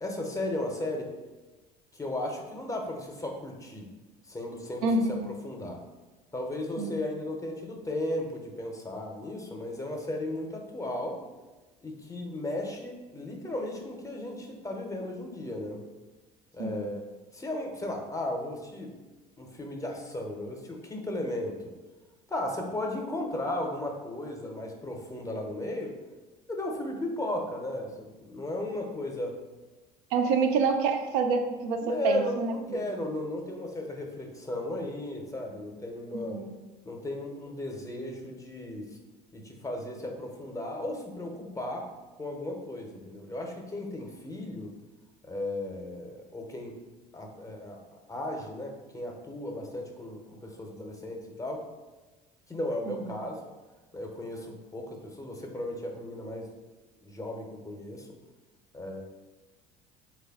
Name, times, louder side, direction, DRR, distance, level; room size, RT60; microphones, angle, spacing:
voice 1, 0.0-1.1 1.9-3.9 4.3-5.0 5.3-5.8 6.3-11.2 11.8-15.8 16.5-17.1 17.3-19.0 19.4-21.7 22.3-25.9 26.5-29.4 31.8-36.4 36.9-38.9 39.3-41.9 42.2-44.7 45.3-46.8 47.1-47.8 48.1-51.6 52.5-53.4 53.9-56.5 57.0-58.1 58.7-59.0, left 1 dB, 15° left, 1 dB, 0.6 m, -35 dB
voice 2, 4.8-5.3 6.8-7.0 16.6-16.8 30.1-32.8 36.1-36.5 52.9-53.0, right 4 dB, 65° right, 5 dB, 0.4 m, -27 dB
3.3 x 2.3 x 3.4 m, 1.2 s
hypercardioid pair, 65°, 21 cm